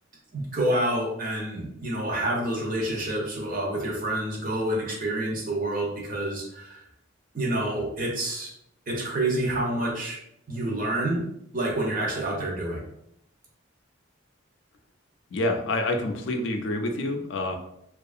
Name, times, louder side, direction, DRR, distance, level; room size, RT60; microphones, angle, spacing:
voice 1, 0.3-6.8 7.3-8.5 8.9-10.2 10.5-11.2 11.5-12.8, right 1 dB, 45° right, -1 dB, 0.6 m, -28 dB
voice 2, 15.3-17.6, left 2 dB, 65° left, 4 dB, 0.4 m, -27 dB
2.7 x 2.3 x 2.4 m, 0.77 s
head